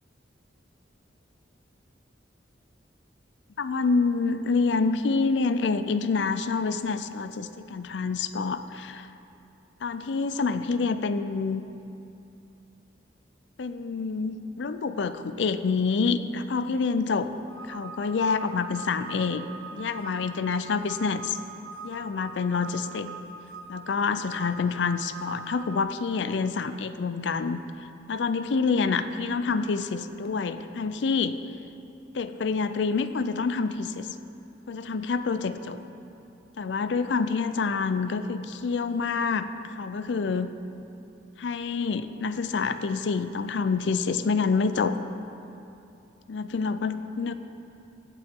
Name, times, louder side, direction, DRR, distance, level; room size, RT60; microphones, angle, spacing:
voice 1, 3.6-9.1 9.8-11.6 13.6-17.3 17.7-19.4 19.7-21.4 21.8-23.1 23.7-27.6 28.1-31.4 32.1-34.1 34.7-35.8 36.6-40.5 41.4-45.0 46.3-47.3, left 4 dB, 75° left, 11 dB, 0.4 m, -27 dB
sound 1, 17.5-25.8, right 4 dB, 85° right, 0.9 m, -43 dB
16.0 x 7.7 x 3.7 m, 2.8 s
head